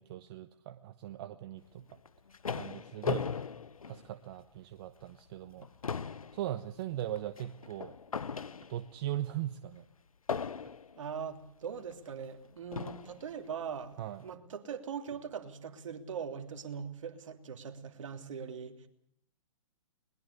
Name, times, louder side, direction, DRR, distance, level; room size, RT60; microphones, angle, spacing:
voice 1, 0.0-1.8 2.5-3.3 3.9-5.7 6.3-7.9 8.7-9.8 14.0-14.2, right 12 dB, 45° right, 1.1 m, -39 dB
sound 1, 1.9-4.6 5.0-5.2 5.5-9.0 10.3-11.0 11.9-12.0 12.7-13.2, left 6 dB, 90° left, 1.0 m, -38 dB
voice 2, 11.0-18.9, right 7 dB, 65° right, 3.0 m, -41 dB
21.5 x 20.5 x 8.2 m
hypercardioid pair, 135°, 17 cm